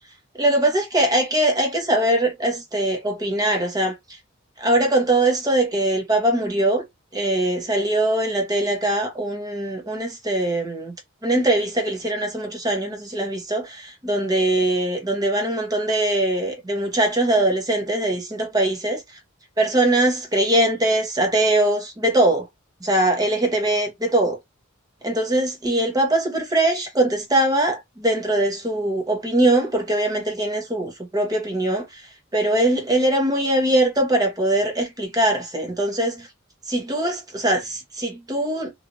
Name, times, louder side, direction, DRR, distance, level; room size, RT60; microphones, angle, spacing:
voice 1, 0.4-4.2 4.6-6.8 7.1-10.9 11.2-19.2 19.6-22.5 22.8-24.4 25.0-36.3 36.6-38.7, right 1 dB, 20° right, 0.9 m, -22 dB
3.1 x 2.5 x 2.5 m
head